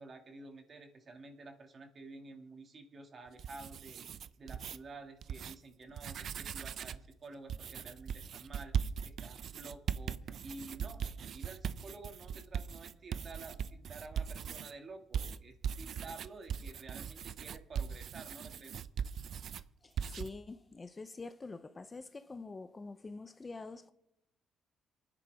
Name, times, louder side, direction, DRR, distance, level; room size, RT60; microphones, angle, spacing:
voice 1, 0.0-4.0 4.4-11.0 11.3-18.8, right 3 dB, 45° right, 2.3 m, -51 dB
sound 1, 3.3-4.8 5.2-5.5 5.9-7.1 7.5-14.7 15.1-19.6 20.0-20.3, right 8 dB, 65° right, 0.5 m, -39 dB
voice 2, 19.8-23.9, left 3 dB, 25° left, 0.7 m, -46 dB
27.5 x 9.9 x 3.6 m
cardioid pair, 90°, 0 cm